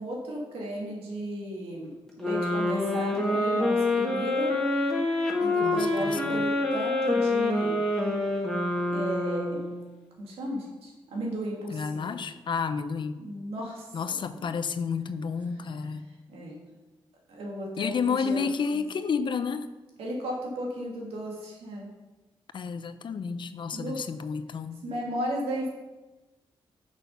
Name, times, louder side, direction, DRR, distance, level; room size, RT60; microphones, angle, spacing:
voice 1, 0.0-1.9 2.2-4.5 5.4-7.8 8.9-9.7 10.2-12.1 13.2-13.9 16.3-16.5 17.3-18.8 20.0-21.9 23.7-24.0 24.8-25.7, right 1 dB, 90° right, -2 dB, 2.1 m, -34 dB
sound 1, 2.2-9.9, left 2 dB, 5° left, 1.7 m, -26 dB
voice 2, 5.6-6.5 11.7-13.2 13.9-16.0 17.8-19.7 22.5-24.8, left 5 dB, 55° left, 11 dB, 0.6 m, -31 dB
6.3 x 6.2 x 5.5 m, 1.2 s
cardioid pair, 75°, 10 cm